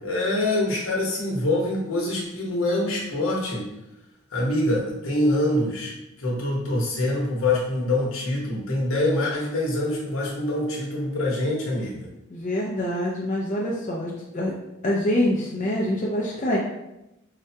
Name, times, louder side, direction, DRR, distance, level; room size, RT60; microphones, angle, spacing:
voice 1, 0.0-3.7 4.3-5.9 6.2-12.1, left 1 dB, 70° left, -3 dB, 1.0 m, -25 dB
voice 2, 12.3-14.5 14.8-16.6, left 1 dB, 35° left, -3 dB, 0.4 m, -25 dB
4.7 x 2.1 x 2.7 m, 0.92 s
head